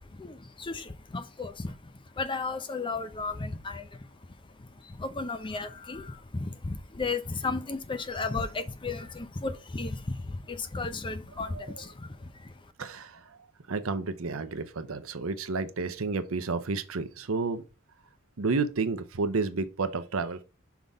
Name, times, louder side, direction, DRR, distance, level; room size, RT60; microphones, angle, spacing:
voice 1, 0.2-4.1 4.6-12.5, left 3 dB, 25° left, 0.5 m, -34 dB
voice 2, 11.5-11.8 12.8-13.4 13.7-17.6 18.4-20.4, right 4 dB, 70° right, 0.7 m, -31 dB
5.8 x 3.6 x 5.2 m
head